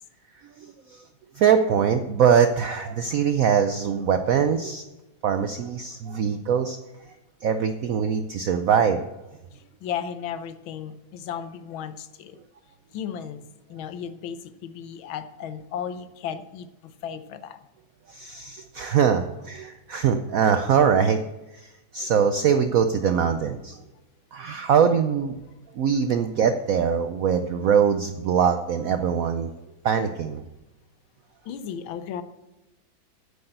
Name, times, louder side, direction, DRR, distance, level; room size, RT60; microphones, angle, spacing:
voice 1, 0.6-1.0 1.4-4.8 5.2-6.8 7.0-7.1 7.4-9.0 18.1-21.2 21.5-23.8 24.3-25.3 25.7-29.5 29.8-30.4, right 7 dB, 75° right, 8 dB, 0.7 m, -22 dB
voice 2, 9.8-12.4 12.9-17.6 31.4-32.2, left 8 dB, 80° left, 11 dB, 1.6 m, -35 dB
8.7 x 8.0 x 7.9 m, 1.0 s
omnidirectional pair, 2.2 m